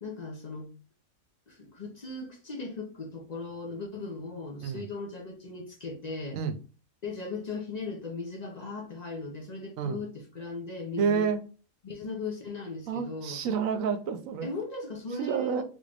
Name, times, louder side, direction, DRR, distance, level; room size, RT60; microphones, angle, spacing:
voice 1, 0.0-0.7 1.5-6.4 7.0-11.3 11.8-13.4 14.4-15.6, left 3 dB, 45° left, 0.6 m, -38 dB
voice 2, 11.0-11.4 12.9-14.5 15.2-15.6, right 6 dB, 75° right, 1.0 m, -29 dB
3.8 x 2.5 x 3.3 m
omnidirectional pair, 1.4 m